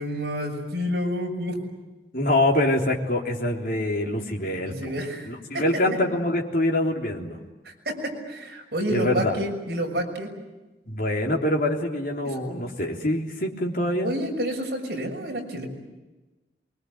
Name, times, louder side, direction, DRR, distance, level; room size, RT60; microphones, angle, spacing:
voice 1, 0.0-1.5 4.6-5.6 7.6-10.3 12.2-12.4 14.0-15.7, equal, 60° right, 1 dB, 6.4 m, -29 dB
voice 2, 2.1-4.9 5.3-7.4 8.9-9.4 10.9-14.1, left 1 dB, 50° left, 1 dB, 3.5 m, -25 dB
24.0 x 23.5 x 9.6 m, 1.1 s
head